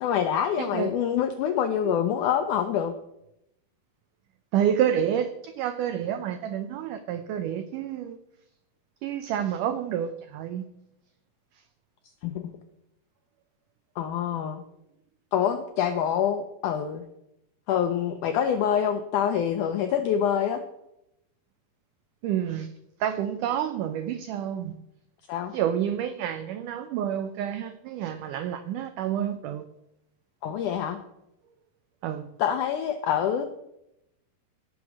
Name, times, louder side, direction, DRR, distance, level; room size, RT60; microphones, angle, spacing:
voice 1, 0.0-2.9 12.2-12.4 14.0-14.6 15.3-17.0 17.7-20.6 25.3-25.5 30.4-31.0 32.4-33.4, left 9 dB, 80° left, 7 dB, 1.8 m, -26 dB
voice 2, 0.6-0.9 1.9-2.0 4.5-8.2 9.0-10.6 22.2-22.7 23.0-24.8 25.5-29.6 32.0-32.3, right 9 dB, 85° right, 10 dB, 1.8 m, -29 dB
16.5 x 6.2 x 6.1 m, 0.85 s
omnidirectional pair, 4.4 m